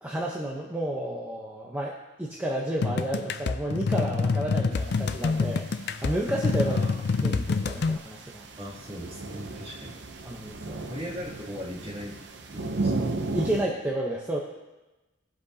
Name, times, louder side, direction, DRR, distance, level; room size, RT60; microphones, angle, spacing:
voice 1, 0.0-1.9 2.2-5.7 6.0-6.8 7.2-8.5 10.2-10.8 13.3-14.4, right 1 dB, 10° right, -3 dB, 0.9 m, -31 dB
sound 1, 2.8-8.0, left 4 dB, 60° left, 0.4 m, -27 dB
sound 2, 4.7-13.6, right 3 dB, 65° right, 0.8 m, -36 dB
voice 2, 6.6-7.0 8.6-10.0 10.9-12.2 12.5-12.9, equal, 30° right, -7 dB, 3.0 m, -38 dB
19.0 x 7.9 x 2.9 m, 1.1 s
head